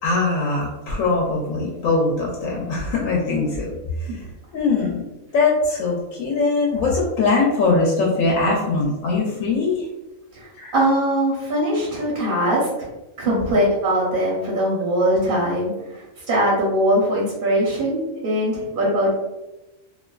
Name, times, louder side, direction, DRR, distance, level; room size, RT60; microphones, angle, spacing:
voice 1, 0.0-3.7 4.5-5.0 5.3-9.8 10.6-10.7 13.3-13.5, left 3 dB, 75° left, -3 dB, 0.9 m, -21 dB
voice 2, 10.3-12.9 13.2-19.1, equal, 50° right, -6 dB, 0.8 m, -21 dB
2.4 x 2.3 x 2.2 m, 1.0 s
omnidirectional pair, 1.4 m